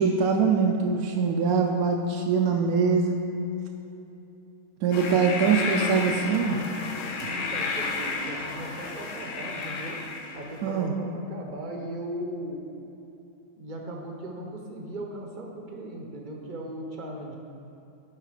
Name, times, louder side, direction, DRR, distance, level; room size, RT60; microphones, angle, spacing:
voice 1, 0.0-3.2 4.8-6.6 10.6-10.9, right 5 dB, 85° right, 2 dB, 1.0 m, -23 dB
sound 1, 4.9-10.7, left 3 dB, 65° left, 1.0 m, -32 dB
voice 2, 7.3-10.0 10.3-12.6 13.6-17.4, right 1 dB, 45° right, 1 dB, 0.8 m, -38 dB
7.5 x 5.0 x 4.8 m, 2.8 s
omnidirectional pair, 1.5 m